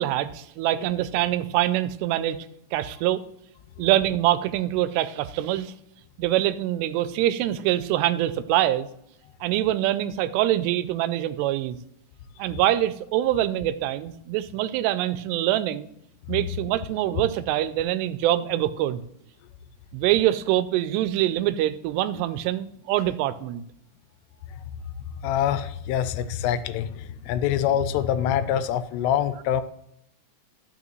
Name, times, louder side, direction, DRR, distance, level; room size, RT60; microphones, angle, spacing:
voice 1, 0.0-2.5 2.7-3.2 3.8-5.7 6.2-8.9 9.4-11.8 12.4-15.9 16.3-19.0 19.9-23.6, right 13 dB, 90° right, 14 dB, 2.7 m, -24 dB
voice 2, 25.2-29.6, left 10 dB, 85° left, 12 dB, 2.7 m, -25 dB
13.0 x 6.1 x 3.1 m, 0.75 s
omnidirectional pair, 4.7 m